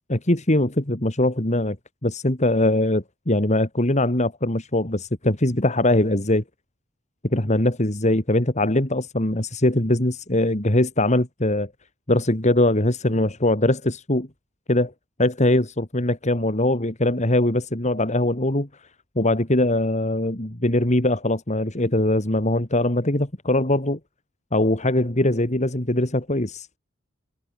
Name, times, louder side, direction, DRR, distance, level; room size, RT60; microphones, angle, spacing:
voice 1, 0.1-1.8 2.0-6.4 7.2-11.7 12.1-14.3 14.7-14.9 15.2-18.7 19.2-24.0 24.5-26.7, left 1 dB, 35° left, 2.8 m, -21 dB
head